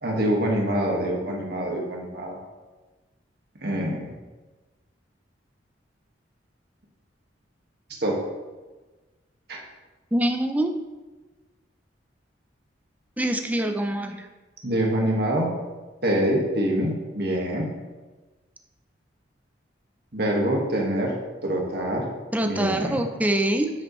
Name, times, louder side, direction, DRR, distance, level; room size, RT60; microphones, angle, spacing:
voice 1, 0.0-2.4 3.6-4.1 8.0-8.2 9.5-9.6 14.6-15.6 16.0-17.7 20.1-21.1 21.4-22.1 22.4-23.0, right 1 dB, 60° right, -1 dB, 1.8 m, -25 dB
voice 2, 10.1-10.7 13.2-14.3 22.3-23.7, right 1 dB, 10° right, 5 dB, 0.6 m, -24 dB
9.5 x 8.0 x 3.2 m, 1.2 s
head